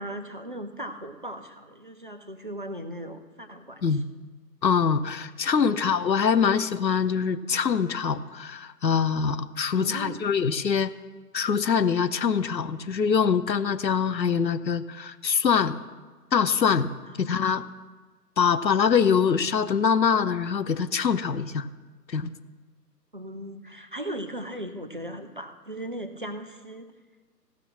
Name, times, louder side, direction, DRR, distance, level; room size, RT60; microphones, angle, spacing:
voice 1, 0.0-4.0 5.5-5.8 9.8-10.2 17.1-17.3 23.1-26.9, right 1 dB, 35° right, 8 dB, 0.5 m, -38 dB
voice 2, 4.6-10.9 11.3-15.7 16.3-16.9 17.2-17.7 18.4-21.7 22.1-22.3, left 6 dB, 85° left, 12 dB, 0.8 m, -24 dB
16.0 x 5.9 x 6.1 m, 1.3 s
figure-of-eight pair, 140°, 50 cm